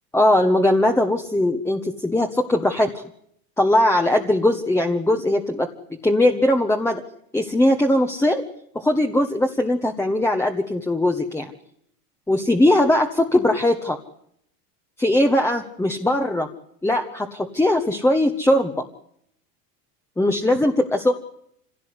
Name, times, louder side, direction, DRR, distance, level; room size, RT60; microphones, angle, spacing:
voice 1, 0.1-3.0 3.6-5.7 6.0-7.0 7.3-8.4 8.7-11.5 12.3-14.0 15.0-16.5 16.8-18.8 20.2-21.1, left 1 dB, 5° left, 3 dB, 1.3 m, -20 dB
25.5 x 17.5 x 9.7 m, 0.73 s
supercardioid pair, 125°, 46 cm